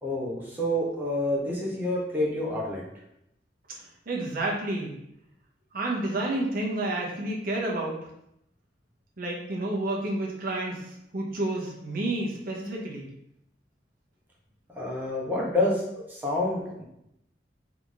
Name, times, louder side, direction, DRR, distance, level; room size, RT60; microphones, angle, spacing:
voice 1, 0.0-2.8 14.8-15.8 16.1-16.8, left 1 dB, 10° right, -5 dB, 1.2 m, -28 dB
voice 2, 4.1-4.9 5.7-8.0 9.2-13.1, right 2 dB, 55° right, -2 dB, 1.0 m, -30 dB
3.7 x 3.6 x 3.6 m, 0.79 s
head